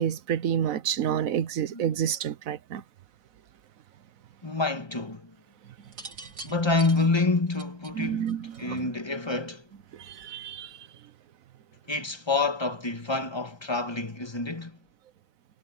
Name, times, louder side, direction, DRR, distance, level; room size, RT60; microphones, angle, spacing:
voice 1, 0.0-2.8 7.9-8.9 9.9-10.8, right 9 dB, 65° right, 1.2 m, -29 dB
voice 2, 1.0-1.3 1.7-2.0 4.4-5.4 6.4-8.3 8.6-9.6 11.9-14.8, left 3 dB, 15° left, 2.0 m, -28 dB
sound 1, 5.8-9.0 10.1-10.5, right 2 dB, 90° right, 4.1 m, -44 dB
omnidirectional pair, 1.7 m